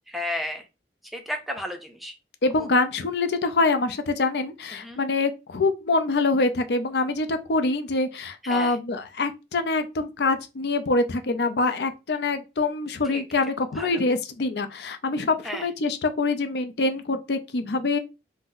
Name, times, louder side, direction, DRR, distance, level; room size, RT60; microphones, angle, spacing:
voice 1, 0.1-0.6 1.1-2.1 2.6-2.7 4.7-5.0 8.4-8.8 13.1-13.2 13.8-13.9 15.4-15.7, left 1 dB, ahead, 0.5 m, -32 dB
voice 2, 2.4-18.0, left 3 dB, 65° left, 0.5 m, -25 dB
2.6 x 2.1 x 3.8 m
head